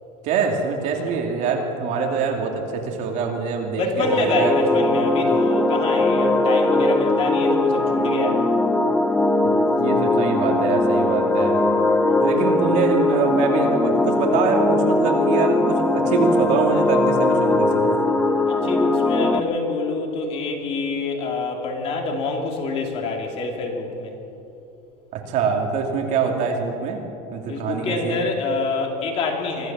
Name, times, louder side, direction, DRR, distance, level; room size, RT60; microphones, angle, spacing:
voice 1, 0.2-4.5 9.8-11.6 12.2-18.0 25.1-27.0 27.3-28.2, right 5 dB, 35° right, 2 dB, 2.7 m, -24 dB
voice 2, 3.8-8.4 12.1-12.3 18.5-24.2 27.5-29.7, left 3 dB, 30° left, 2 dB, 2.5 m, -26 dB
sound 1, 4.0-19.4, left 2 dB, 5° left, 0.6 m, -20 dB
25.0 x 15.5 x 7.4 m, 2.8 s
supercardioid pair, 180°, 20 cm